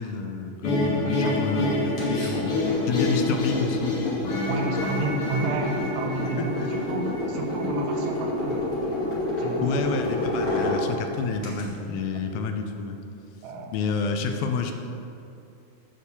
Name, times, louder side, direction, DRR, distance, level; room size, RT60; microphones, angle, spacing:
voice 1, 0.0-2.6 2.8-4.0 6.2-6.7 9.6-13.0 13.7-14.7, left 4 dB, 85° left, 5 dB, 2.5 m, -29 dB
sound 1, 0.6-7.7, left 2 dB, 55° left, 1.7 m, -28 dB
voice 2, 1.0-1.4 4.5-8.7 9.4-9.9 10.4-10.6 13.4-13.7, right 3 dB, 75° right, 1 dB, 2.3 m, -31 dB
sound 2, 1.3-11.6, left 1 dB, 40° left, 1.1 m, -29 dB
7.1 x 4.5 x 6.9 m, 2.7 s
omnidirectional pair, 4.1 m